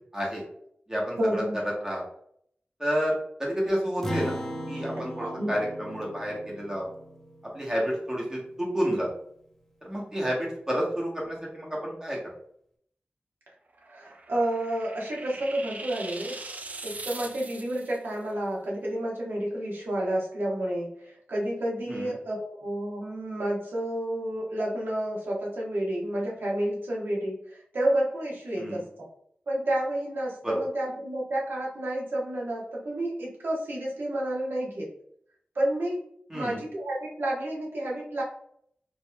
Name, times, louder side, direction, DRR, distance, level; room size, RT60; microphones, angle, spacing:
voice 1, 0.1-0.4 0.9-1.4 1.8-2.0 2.8-4.3 4.7-6.8 7.5-9.1 9.8-12.2 21.9-22.1 28.6-28.8 30.4-30.5 36.3-36.6, equal, 15° right, -4 dB, 1.2 m, -30 dB
voice 2, 1.2-1.6 5.1-5.5 13.9-16.4 16.8-29.1 29.5-34.9 35.5-36.0 36.3-38.2, right 1 dB, 75° right, -4 dB, 1.1 m, -30 dB
Acoustic guitar, 4.0-8.7, equal, 10° left, 0.7 m, -38 dB
sound 1, 13.8-18.0, right 3 dB, 45° right, 0.4 m, -41 dB
4.6 x 2.9 x 2.2 m, 0.67 s
wide cardioid pair, 100°, 4 cm